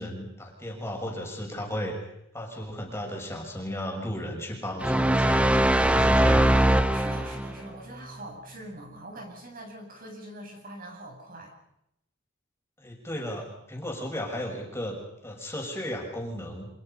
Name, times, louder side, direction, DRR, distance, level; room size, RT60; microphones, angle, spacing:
voice 1, 0.0-2.0 2.3-6.6 12.8-14.9 15.2-16.7, equal, 15° left, 0 dB, 6.4 m, -34 dB
sound 1, 4.8-7.6, right 1 dB, 5° right, 1.0 m, -21 dB
voice 2, 6.9-11.6, right 1 dB, 45° right, 2 dB, 7.9 m, -43 dB
29.0 x 27.0 x 5.6 m, 0.80 s
head